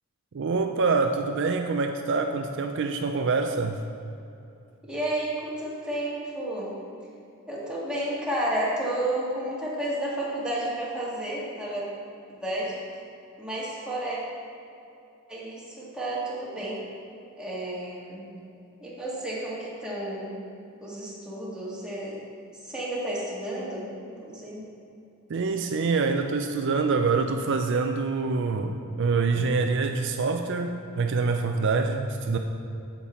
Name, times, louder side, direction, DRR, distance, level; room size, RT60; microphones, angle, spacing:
voice 1, 0.3-3.8 25.3-32.4, right 4 dB, 55° right, 5 dB, 0.4 m, -25 dB
voice 2, 4.8-6.7 7.5-11.9 12.3-12.8 13.4-14.2 15.3-16.8 17.4-18.3 18.8-20.4 20.8-22.2 22.6-24.6, right 1 dB, 5° right, -7 dB, 1.8 m, -31 dB
8.5 x 7.3 x 4.3 m, 2.7 s
head